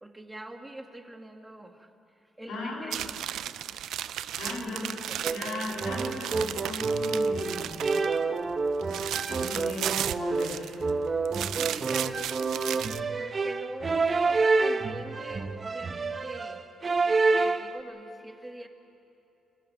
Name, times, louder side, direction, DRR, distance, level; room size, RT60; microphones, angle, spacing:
voice 1, 0.0-3.2 4.5-5.2 11.5-16.7 17.1-18.7, right 1 dB, 10° right, 5 dB, 1.9 m, -44 dB
voice 2, 2.5-2.9 4.4-5.0 5.3-7.7 9.3-10.8, left 2 dB, 80° left, -2 dB, 7.3 m, -37 dB
sound 1, 2.9-8.2 8.5-10.9 11.2-13.0, right 11 dB, 80° right, 0.5 m, -35 dB
sound 2, 5.2-17.8, right 3 dB, 35° right, 1.0 m, -28 dB
26.5 x 13.5 x 9.3 m, 3.0 s
cardioid pair, 90°, 0 cm